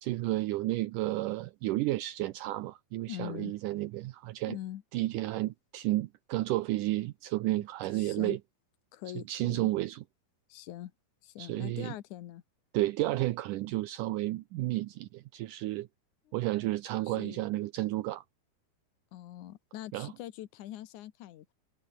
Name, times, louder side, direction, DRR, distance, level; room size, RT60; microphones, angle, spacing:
voice 1, 0.0-4.6 4.9-8.4 9.1-10.0 11.4-11.9 12.7-15.9 16.3-18.2 19.9-20.1, right 17 dB, 80° right, 1.9 m, -32 dB
voice 2, 3.1-3.5 4.4-4.8 7.6-7.7 7.9-8.4 8.9-9.7 10.5-10.9 11.2-12.4 17.1-17.4 19.1-21.5, left 13 dB, 65° left, 2.2 m, -43 dB
omnidirectional pair, 4.6 m